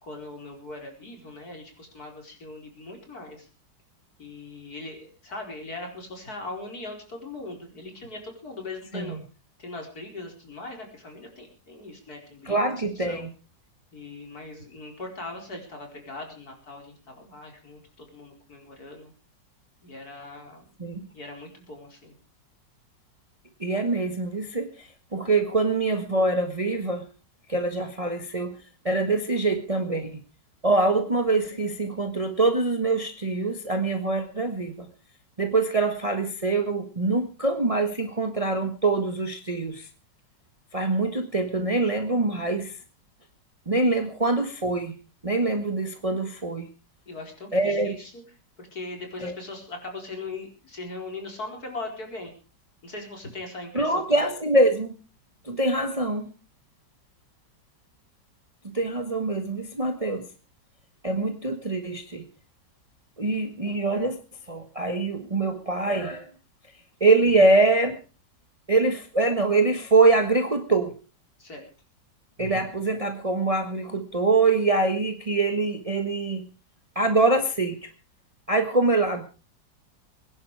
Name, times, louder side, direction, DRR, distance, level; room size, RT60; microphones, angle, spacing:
voice 1, 0.0-3.5 4.2-9.2 9.6-12.6 13.0-13.3 13.9-19.1 19.8-20.7 21.1-22.2 47.1-48.2 48.6-52.3 52.8-54.3 71.4-71.7, left 2 dB, 55° left, 2 dB, 5.1 m, -40 dB
voice 2, 12.4-13.3 20.8-21.1 23.6-27.0 27.5-28.5 28.8-30.2 30.6-34.9 35.4-39.9 40.7-42.8 43.7-44.9 45.2-46.7 47.5-47.9 49.2-49.3 53.7-54.9 55.4-56.3 58.7-60.3 61.0-62.3 63.2-64.2 64.5-66.3 67.0-68.0 68.7-70.9 72.4-76.5 76.9-77.9 78.5-79.2, right 3 dB, 20° right, 6 dB, 1.4 m, -24 dB
23.0 x 10.5 x 4.9 m, 0.35 s
omnidirectional pair, 1.9 m